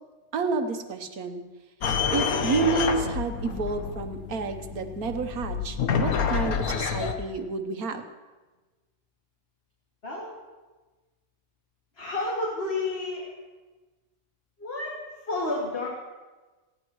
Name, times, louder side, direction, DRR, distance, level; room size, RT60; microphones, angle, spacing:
voice 1, 0.3-1.4 2.1-8.0, right 4 dB, 85° right, 7 dB, 1.5 m, -30 dB
sound 1, 1.8-7.1, left 6 dB, 85° left, 1.5 m, -28 dB
voice 2, 11.9-13.4 14.6-15.9, left 2 dB, 45° left, -4 dB, 2.5 m, -31 dB
19.5 x 16.0 x 3.1 m, 1.2 s
omnidirectional pair, 1.5 m